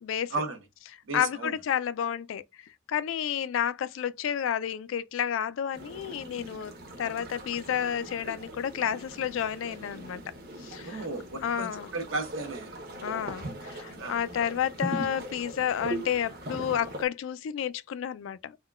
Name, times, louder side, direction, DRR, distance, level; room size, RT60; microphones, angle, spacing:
voice 1, 0.0-0.3 1.1-2.4 2.9-10.2 10.6-11.1 11.4-11.9 13.0-18.6, left 9 dB, 75° left, 0.3 m, -31 dB
voice 2, 1.1-1.5 10.8-12.8 14.0-14.2, right 3 dB, 75° right, 0.8 m, -34 dB
sound 1, 5.7-17.1, right 1 dB, 50° right, 0.8 m, -40 dB
3.6 x 2.2 x 2.2 m
head